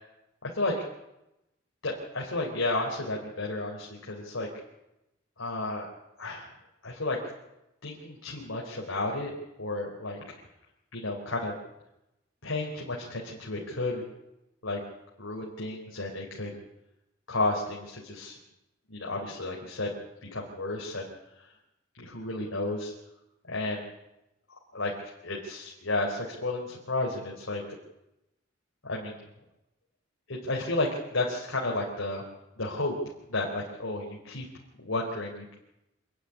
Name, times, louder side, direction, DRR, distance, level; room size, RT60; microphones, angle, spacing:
voice 1, 0.4-0.8 1.8-4.5 5.4-5.9 6.2-6.5 6.8-7.2 7.8-9.3 9.6-10.2 10.9-11.5 12.4-14.0 14.6-14.8 15.2-16.5 17.3-18.3 18.9-19.9 20.3-21.1 22.0-22.9 23.4-23.9 24.7-24.9 25.2-27.6 28.8-29.2 30.3-32.2 32.6-32.9 33.3-34.5 34.8-35.5, left 2 dB, 75° left, -2 dB, 3.8 m, -32 dB
26.0 x 10.0 x 9.9 m, 0.92 s
head